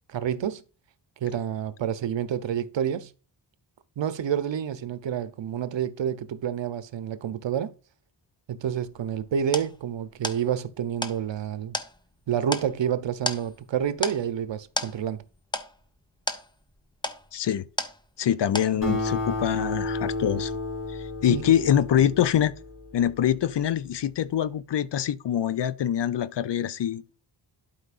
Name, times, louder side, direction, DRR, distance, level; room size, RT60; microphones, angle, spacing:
voice 1, 0.1-0.6 1.2-3.1 4.0-7.7 8.5-11.8 12.3-15.2 18.9-19.0 21.3-21.4, right 9 dB, 85° right, 0.8 m, -29 dB
sound 1, 8.8-18.3 18.5-19.1, left 1 dB, 10° left, 0.7 m, -35 dB
voice 2, 17.3-17.7 18.2-20.6 20.9-22.5 22.9-27.3, left 10 dB, 70° left, 0.6 m, -25 dB
Acoustic guitar, 18.8-23.7, left 2 dB, 50° left, 3.0 m, -32 dB
11.5 x 5.1 x 2.5 m
wide cardioid pair, 125°, 43 cm